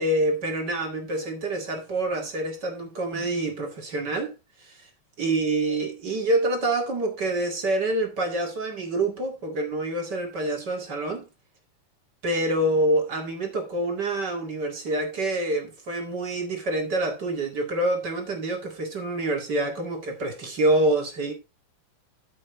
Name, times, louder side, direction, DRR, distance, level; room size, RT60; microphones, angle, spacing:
voice 1, 0.0-4.3 4.6-4.8 5.2-11.3 12.2-21.3, right 1 dB, 35° right, 2.3 m, -26 dB
12.5 x 6.9 x 3.7 m
omnidirectional pair, 3.6 m